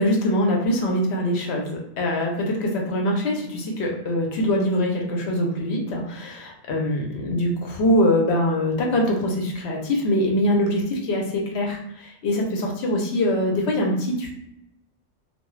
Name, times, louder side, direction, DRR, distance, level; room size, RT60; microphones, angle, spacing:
voice 1, 0.0-14.3, left 1 dB, 65° left, 0 dB, 0.9 m, -23 dB
2.4 x 2.3 x 3.1 m, 0.81 s
omnidirectional pair, 1.3 m